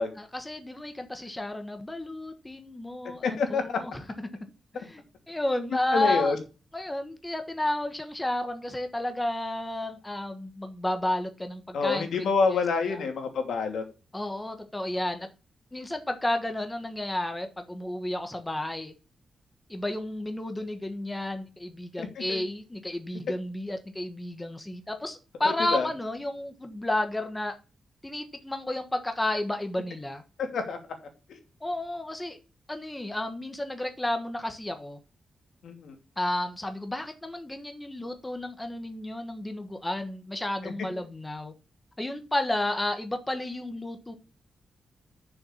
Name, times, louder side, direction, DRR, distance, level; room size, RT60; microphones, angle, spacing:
voice 1, 0.2-4.0 4.7-6.3 6.7-13.0 14.1-15.3 15.7-18.9 19.7-27.6 28.0-30.2 31.6-32.4 32.7-35.0 36.2-41.5 42.0-44.1, left 1 dB, 10° left, 1.2 m, -32 dB
voice 2, 3.2-3.8 5.9-6.4 11.7-13.8 22.0-22.4 25.7-25.9 30.4-30.8 35.6-35.9 40.6-40.7, left 4 dB, 85° left, 2.7 m, -27 dB
7.0 x 7.0 x 7.0 m
wide cardioid pair, 175°, 0 cm